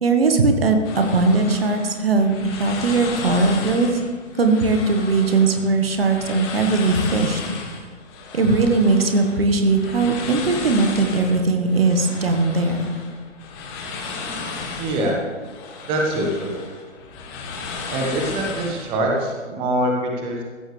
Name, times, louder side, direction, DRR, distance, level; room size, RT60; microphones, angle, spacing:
voice 1, 0.0-4.0 4.4-7.4 8.3-12.9 14.0-14.1, right 3 dB, 50° right, 5 dB, 1.6 m, -19 dB
sound 1, 0.8-19.3, left 4 dB, 20° left, 1.4 m, -34 dB
voice 2, 14.8-15.2 15.8-16.5 17.9-20.4, right 1 dB, 15° right, 0 dB, 1.4 m, -24 dB
15.0 x 14.5 x 3.4 m, 1.5 s
figure-of-eight pair, 135°, 37 cm